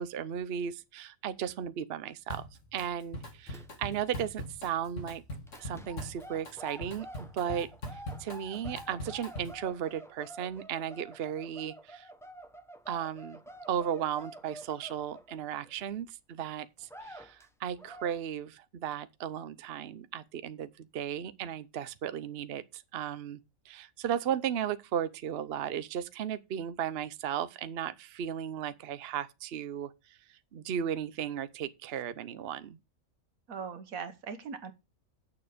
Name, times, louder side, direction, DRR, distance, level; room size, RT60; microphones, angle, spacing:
voice 1, 0.0-5.2 5.6-12.1 12.9-13.4 13.7-23.4 23.7-30.2 30.5-32.8, right 9 dB, 55° right, 0.9 m, -35 dB
Drum kit, 2.3-2.9 3.1-9.7, equal, 65° left, 2.5 m, -41 dB
sound 1, 3.2-4.1 4.4-4.6 5.5-16.0 16.4-16.5 16.8-17.5 17.8-18.2, right 1 dB, ahead, 0.9 m, -49 dB
voice 2, 33.5-34.7, right 6 dB, 85° right, 1.7 m, -40 dB
8.9 x 6.9 x 5.1 m
omnidirectional pair, 1.4 m